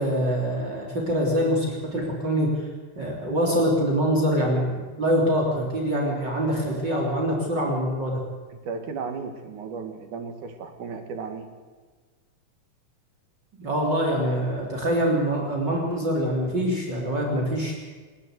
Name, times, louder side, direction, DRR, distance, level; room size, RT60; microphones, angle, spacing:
voice 1, 0.0-2.6 3.0-8.2 13.6-17.8, equal, 35° right, -1 dB, 3.9 m, -24 dB
voice 2, 8.5-11.5, right 5 dB, 80° right, 6 dB, 3.3 m, -35 dB
27.5 x 12.0 x 8.1 m, 1.4 s
omnidirectional pair, 3.5 m